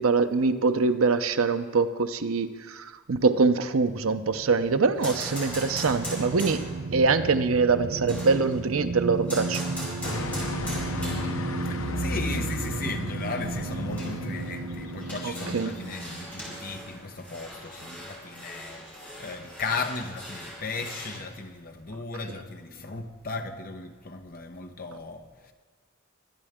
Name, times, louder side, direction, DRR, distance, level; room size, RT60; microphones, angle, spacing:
voice 1, 0.0-6.6 6.9-9.6 15.2-15.7, right 4 dB, 80° right, 10 dB, 0.7 m, -24 dB
sound 1, 4.0-17.6, right 3 dB, 45° right, 0.4 m, -35 dB
sound 2, 4.9-6.9 8.1-8.7 9.3-11.6 11.9-12.0 13.3-13.4 14.0-21.2, equal, 5° left, 5.0 m, -40 dB
sound 3, 10.0-16.6, left 2 dB, 75° left, 1.0 m, -35 dB
voice 2, 11.6-18.9 19.2-25.5, left 3 dB, 45° left, 5 dB, 1.0 m, -36 dB
23.0 x 10.0 x 3.7 m, 1.5 s
head